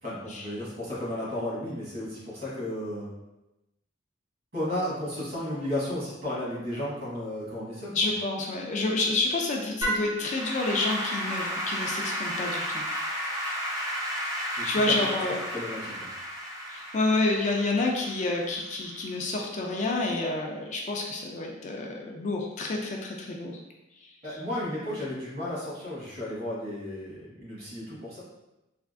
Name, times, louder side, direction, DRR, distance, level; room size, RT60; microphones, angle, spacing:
voice 1, 0.0-3.1 4.5-7.9 14.6-15.0 15.5-16.1 24.2-28.2, left 1 dB, 50° right, -8 dB, 1.4 m, -33 dB
voice 2, 7.9-12.8 14.6-15.4 16.7-23.6, left 2 dB, 40° left, 0 dB, 0.4 m, -28 dB
Applause / Keyboard (musical), 9.8-19.1, equal, 20° right, 0.5 m, -33 dB
3.4 x 2.4 x 2.4 m, 0.97 s
head